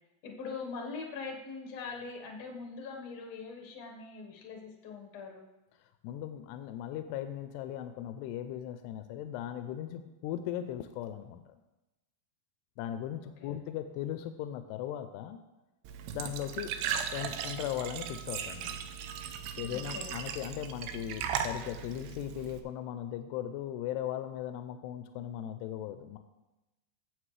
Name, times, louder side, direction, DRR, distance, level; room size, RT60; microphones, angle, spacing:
voice 1, 0.2-5.5 13.4-13.6 19.7-20.1, left 4 dB, 60° left, 1 dB, 1.8 m, -42 dB
voice 2, 6.0-11.4 12.8-15.4 16.1-16.7 17.1-18.8 19.6-26.2, left 11 dB, 90° left, 8 dB, 2.7 m, -38 dB
Glass / Trickle dribble / Fill (with liquid), 15.8-22.6, right 8 dB, 85° right, 2.8 m, -37 dB
16.0 x 7.5 x 3.2 m, 1.0 s
omnidirectional pair, 4.7 m